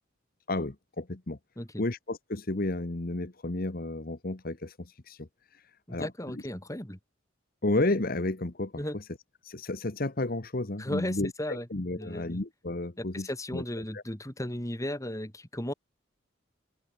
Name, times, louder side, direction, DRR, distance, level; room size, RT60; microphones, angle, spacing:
voice 1, 0.5-1.4 1.8-5.6 5.9-6.4 7.6-9.0 9.4-13.6 13.9-14.0, left 2 dB, 50° left, 1.3 m, -32 dB
voice 2, 5.9-7.0 8.8-9.0 10.8-11.7 11.9-12.4 13.0-15.7, left 1 dB, 15° left, 3.3 m, -35 dB
head